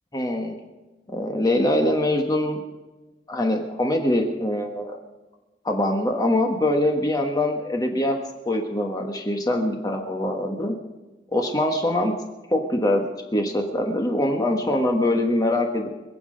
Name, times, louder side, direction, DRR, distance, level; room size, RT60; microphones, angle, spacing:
voice 1, 0.1-0.5 1.1-2.6 3.3-5.0 5.6-8.2 8.4-10.7 11.3-12.1 12.5-13.0 13.3-15.9, left 1 dB, 20° left, 2 dB, 1.4 m, -23 dB
25.0 x 8.6 x 5.2 m, 1.2 s
head